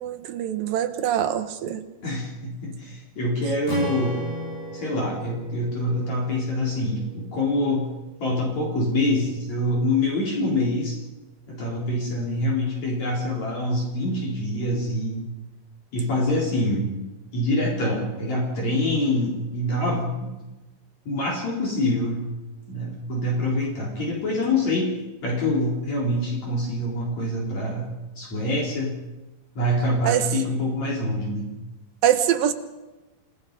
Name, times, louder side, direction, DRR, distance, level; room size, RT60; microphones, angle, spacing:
voice 1, 0.0-1.8 30.0-30.2 32.0-32.5, right 10 dB, 75° right, 8 dB, 2.9 m, -23 dB
voice 2, 2.0-4.2 4.7-7.9 8.2-11.0 11.5-15.2 15.9-16.9 17.3-20.3 21.0-22.2 22.7-24.9 25.2-29.0 29.5-31.5, left 1 dB, 50° left, -3 dB, 5.1 m, -25 dB
Strum, 3.7-7.9, equal, 25° left, 5.0 m, -35 dB
28.5 x 17.5 x 5.4 m, 1.1 s
omnidirectional pair, 4.2 m